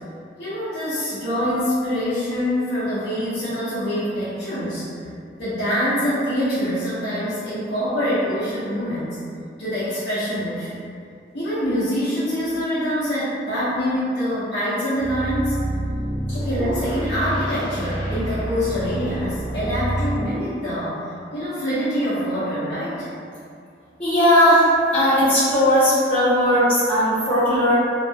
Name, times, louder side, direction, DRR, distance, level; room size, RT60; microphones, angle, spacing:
voice 1, 0.4-4.8 5.4-9.2 9.6-10.8 11.3-15.6 16.3-20.9 21.3-23.1, equal, 65° left, -14 dB, 0.8 m, -25 dB
sound 1, 15.0-20.2, right 1 dB, 25° right, 0.4 m, -28 dB
voice 2, 24.0-24.7 24.9-27.7, equal, 35° left, -15 dB, 0.8 m, -17 dB
2.4 x 2.1 x 3.3 m, 2.4 s
head